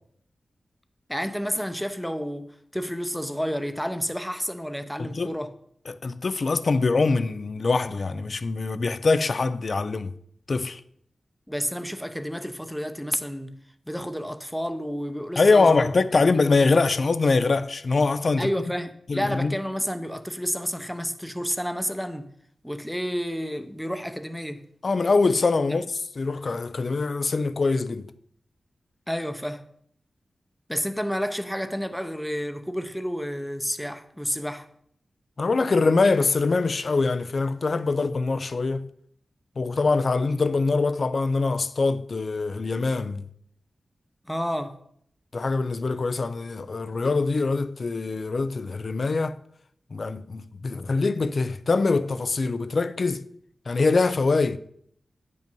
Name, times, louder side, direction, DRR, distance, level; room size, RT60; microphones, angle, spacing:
voice 1, 1.1-5.5 11.5-13.6 13.9-15.9 18.4-22.3 22.6-24.6 25.7-25.8 29.1-29.6 30.7-34.7 44.3-44.8, equal, ahead, 0.7 m, -30 dB
voice 2, 5.0-5.3 5.9-10.1 10.5-10.8 15.4-18.5 19.1-19.5 24.8-28.1 35.4-38.9 39.6-43.3 45.3-49.4 49.9-53.3 53.7-54.6, left 3 dB, 55° left, 0.5 m, -23 dB
9.0 x 5.5 x 5.3 m
wide cardioid pair, 85°, 0 cm